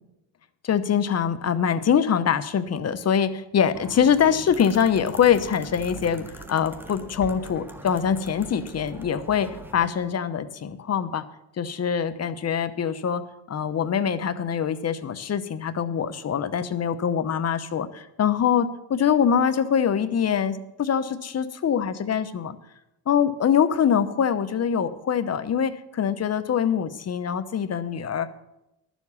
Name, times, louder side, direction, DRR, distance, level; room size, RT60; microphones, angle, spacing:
voice 1, 0.6-11.2 11.6-22.6 23.1-28.3, left 8 dB, 35° left, 13 dB, 0.9 m, -24 dB
sound 1, 3.7-9.8, right 1 dB, 5° right, 1.2 m, -41 dB
12.0 x 7.3 x 7.1 m, 0.89 s
cardioid pair, 100°, 43 cm